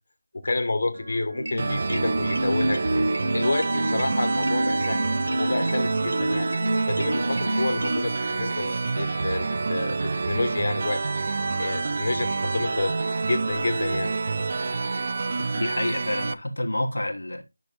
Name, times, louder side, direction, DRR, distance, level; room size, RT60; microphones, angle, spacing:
voice 1, 0.3-2.8 3.3-5.0 5.4-6.5 6.9-11.0 11.6-12.9 13.3-14.1, left 2 dB, 50° left, 1.4 m, -29 dB
Organ, 0.9-15.9, equal, 65° right, 4.0 m, -46 dB
sound 1, 1.4-8.0, right 1 dB, 90° right, 1.0 m, -28 dB
sound 2, 1.6-16.3, right 3 dB, 40° right, 0.4 m, -27 dB
voice 2, 15.5-17.4, left 1 dB, 85° left, 1.3 m, -28 dB
10.5 x 6.0 x 2.5 m
figure-of-eight pair, 165°, 0 cm